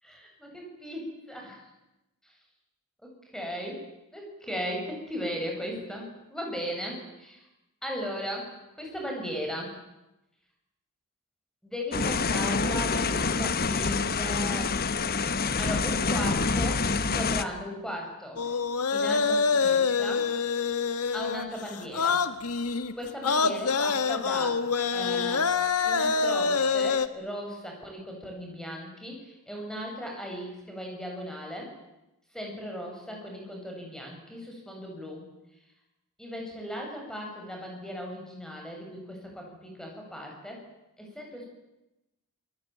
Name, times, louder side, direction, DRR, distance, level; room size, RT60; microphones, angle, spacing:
voice 1, 0.0-1.7 2.2-2.3 3.0-3.8 4.1-7.4 7.8-8.5 8.8-9.8 11.6-14.8 15.6-18.4 18.9-20.3 21.1-22.2 23.0-24.6 24.9-25.5 25.8-31.7 32.3-35.2 36.2-40.6 41.0-41.5, equal, 5° left, 0 dB, 7.8 m, -37 dB
sound 1, 11.9-17.4, left 4 dB, 45° left, 1.2 m, -27 dB
sound 2, 18.4-27.1, left 5 dB, 90° left, 1.5 m, -26 dB
28.0 x 19.5 x 9.3 m, 0.96 s
head